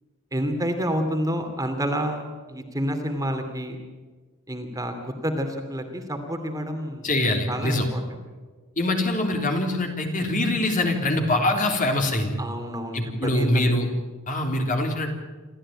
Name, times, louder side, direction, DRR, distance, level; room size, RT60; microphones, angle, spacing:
voice 1, 0.3-3.8 4.5-7.1 7.5-8.0 12.4-13.8, equal, 15° right, 5 dB, 2.7 m, -29 dB
voice 2, 7.0-7.9 8.8-12.3 12.9-13.9 14.3-15.1, left 1 dB, 35° left, 3 dB, 3.5 m, -23 dB
28.0 x 14.0 x 8.9 m, 1.4 s
head